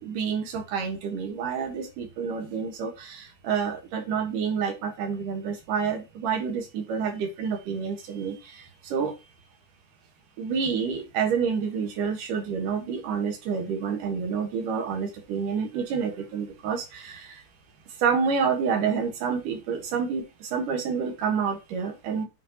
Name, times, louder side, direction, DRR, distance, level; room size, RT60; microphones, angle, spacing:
voice 1, 0.0-8.3 8.9-9.1 10.4-17.4 18.0-22.3, right 6 dB, 85° right, 4 dB, 3.1 m, -28 dB
8.3 x 5.5 x 2.9 m, 0.26 s
omnidirectional pair, 3.6 m